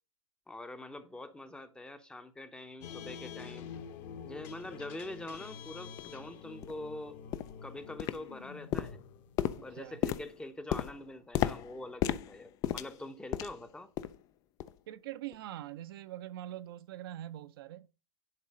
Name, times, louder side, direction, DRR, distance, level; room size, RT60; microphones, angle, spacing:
voice 1, 0.5-3.7 4.2-7.2 7.6-9.0 9.6-13.9, left 1 dB, 5° left, 0.7 m, -44 dB
sound 1, 2.8-10.2, left 7 dB, 35° left, 1.0 m, -47 dB
sound 2, 5.3-5.4 6.0-6.1 6.6-6.8 7.3-7.6 8.0-8.4 8.7-13.7 14.0-14.2 14.6-14.8 15.3-15.4, left 12 dB, 20° left, 0.3 m, -35 dB
voice 2, 9.5-10.0 14.9-17.9, right 13 dB, 45° right, 0.6 m, -43 dB
11.0 x 4.0 x 5.1 m
figure-of-eight pair, 110°, 17 cm